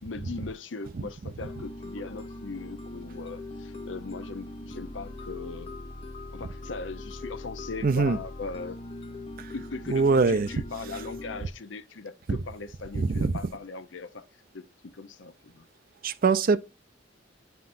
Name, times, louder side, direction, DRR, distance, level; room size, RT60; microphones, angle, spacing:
voice 1, 0.0-5.7 6.3-8.8 9.5-14.2 14.5-15.7, left 4 dB, 75° left, 0.7 m, -39 dB
sound 1, 1.4-11.4, left 2 dB, 30° left, 0.6 m, -41 dB
voice 2, 7.8-8.2 9.4-9.5 9.9-10.5 12.3-12.4 13.0-13.4 16.0-16.6, right 4 dB, 50° right, 0.5 m, -23 dB
9.5 x 5.8 x 2.6 m
head